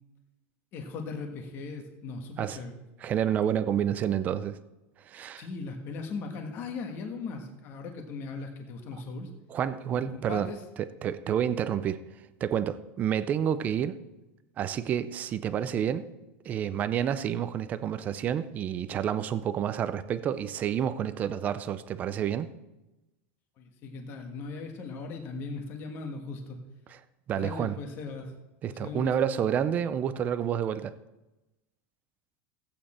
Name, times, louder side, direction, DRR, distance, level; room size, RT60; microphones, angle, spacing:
voice 1, 0.7-2.8 5.4-9.3 9.9-10.0 10.3-10.6 11.4-11.5 23.6-26.6 27.4-28.3 28.7-29.3, left 4 dB, 35° left, 4 dB, 1.4 m, -38 dB
voice 2, 3.0-4.6 5.1-5.5 9.5-10.5 10.8-12.0 12.4-14.0 14.6-16.1 16.4-22.5 26.9-27.0 27.3-27.8 28.6-30.9, right 9 dB, 25° right, 13 dB, 0.5 m, -29 dB
15.0 x 8.7 x 4.3 m, 1.0 s
supercardioid pair, 170°, 7 cm